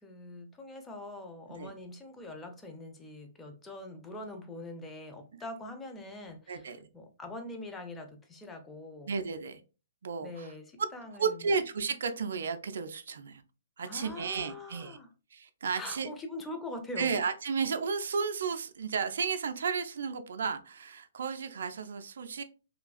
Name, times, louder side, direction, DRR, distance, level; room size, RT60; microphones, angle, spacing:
voice 1, 0.0-9.1 10.2-11.4 13.8-15.1 15.7-17.2, left 2 dB, 10° left, 0.5 m, -43 dB
voice 2, 9.1-9.6 10.0-10.5 11.2-13.4 13.8-15.0 15.3-16.1 17.0-22.4, right 5 dB, 60° right, 0.3 m, -33 dB
3.1 x 2.3 x 2.3 m
figure-of-eight pair, 120°, 0 cm